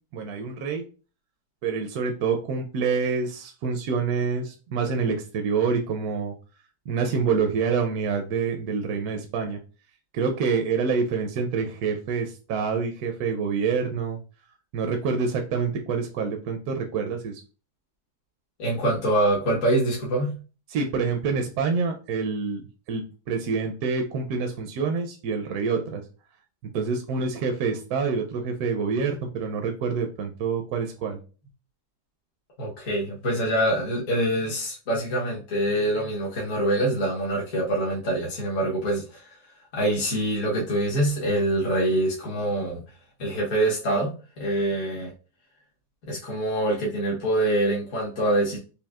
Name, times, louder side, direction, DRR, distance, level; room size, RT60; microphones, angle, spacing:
voice 1, 0.1-0.8 1.6-6.3 6.9-9.6 10.1-14.2 14.7-17.4 20.7-26.0 26.7-31.2, right 5 dB, 75° right, 4 dB, 1.0 m, -27 dB
voice 2, 18.6-20.4 32.6-39.4 39.7-42.8 43.2-44.1 44.4-45.1 46.1-48.6, right 1 dB, 60° left, -4 dB, 1.3 m, -25 dB
5.2 x 2.6 x 2.3 m, 0.35 s
omnidirectional pair, 1.7 m